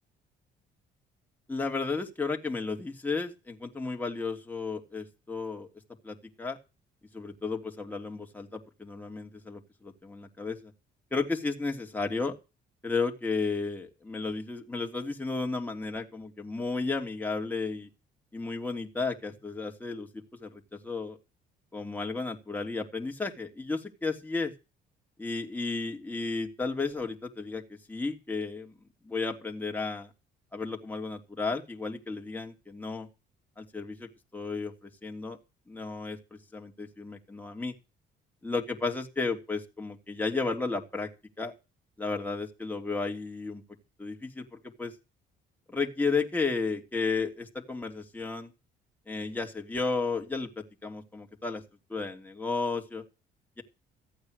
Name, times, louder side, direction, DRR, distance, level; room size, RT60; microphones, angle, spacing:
voice 1, 1.5-5.7 6.0-6.6 7.1-10.7 11.1-12.4 12.8-17.9 18.3-21.2 21.7-24.5 25.2-28.7 29.0-30.1 30.5-33.1 33.6-35.4 35.7-36.2 36.5-37.7 38.4-41.1 41.4-41.5 42.0-43.6 44.0-44.9 45.7-48.5 49.1-51.6 51.9-53.0 53.6-53.7, left 4 dB, 10° left, 1 dB, 3.0 m, -33 dB
15.0 x 8.8 x 6.6 m, 0.30 s
cardioid pair, 110°, 17 cm